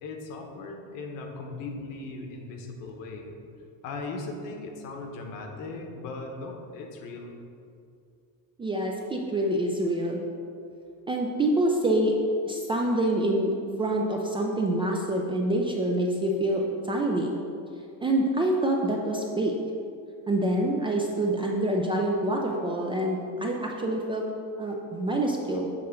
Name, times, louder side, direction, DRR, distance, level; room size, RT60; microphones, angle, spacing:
voice 1, 0.0-3.4 3.8-7.4, left 3 dB, 65° left, 2 dB, 1.1 m, -38 dB
voice 2, 8.6-10.2 11.1-12.1 12.4-17.3 18.0-19.5 20.3-24.2 24.6-25.7, right 1 dB, 15° right, -1 dB, 0.3 m, -26 dB
7.6 x 3.7 x 5.7 m, 2.5 s
cardioid pair, 165°, 35 cm